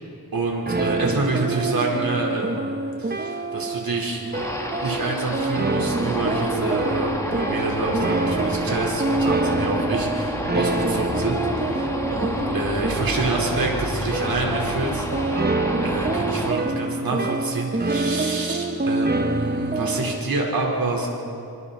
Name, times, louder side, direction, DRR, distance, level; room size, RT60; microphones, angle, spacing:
voice 1, 0.3-4.2 4.8-15.5 15.8-21.1, right 3 dB, 60° right, -2 dB, 4.7 m, -27 dB
sound 1, 0.6-20.2, right 2 dB, 25° right, 1.0 m, -26 dB
sound 2, 4.3-16.5, equal, 10° left, 2.3 m, -29 dB
25.5 x 25.5 x 4.3 m, 2.8 s
wide cardioid pair, 110°, 39 cm